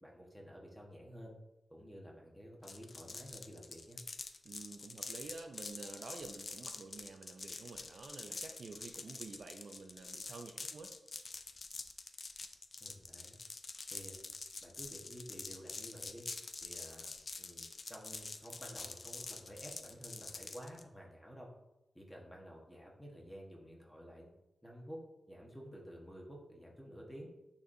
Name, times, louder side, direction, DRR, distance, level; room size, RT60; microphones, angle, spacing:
voice 1, 0.0-1.3 1.7-4.0 12.8-13.4 13.9-14.2 14.6-16.3 16.6-21.5 21.9-24.3 24.6-25.0 25.3-27.3, equal, 5° left, -2 dB, 1.2 m, -51 dB
sound 1, 2.6-20.8, left 4 dB, 45° left, 0.4 m, -46 dB
voice 2, 4.4-11.0, right 3 dB, 60° right, 5 dB, 0.4 m, -50 dB
9.2 x 4.2 x 2.7 m, 0.95 s
wide cardioid pair, 150°, 0 cm